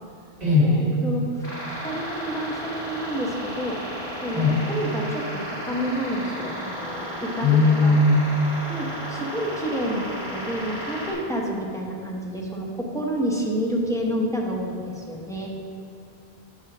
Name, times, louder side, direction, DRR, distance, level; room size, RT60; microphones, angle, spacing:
voice 1, 0.4-0.9 4.3-4.6 7.4-8.3, left 3 dB, 40° right, -8 dB, 2.5 m, -18 dB
voice 2, 1.0-1.5 1.8-3.8 4.2-8.0 8.7-15.5, equal, 5° left, -2 dB, 0.8 m, -29 dB
sound 1, 1.4-11.1, equal, 70° left, 2.2 m, -34 dB
5.9 x 5.9 x 6.0 m, 2.3 s
omnidirectional pair, 1.1 m